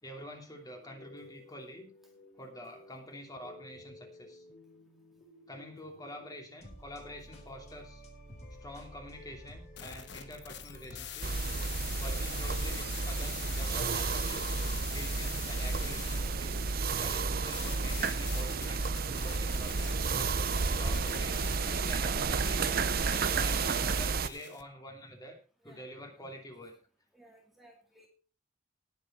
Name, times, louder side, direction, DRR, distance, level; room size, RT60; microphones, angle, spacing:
voice 1, 0.0-1.9 2.4-4.4 5.5-8.0 8.6-11.5 12.0-14.5 14.9-20.0 20.4-22.8 23.4-25.4 25.6-26.7, left 1 dB, 20° left, 2 dB, 2.7 m, -47 dB
sound 1, 0.8-12.0, left 1 dB, 35° left, 4.0 m, -53 dB
sound 2, 9.8-24.6, left 10 dB, 60° left, 1.1 m, -45 dB
sound 3, 11.2-24.3, right 4 dB, 50° right, 0.7 m, -31 dB
voice 2, 27.1-28.1, equal, ahead, 0 dB, 2.0 m, -57 dB
19.0 x 7.4 x 4.3 m, 0.36 s
head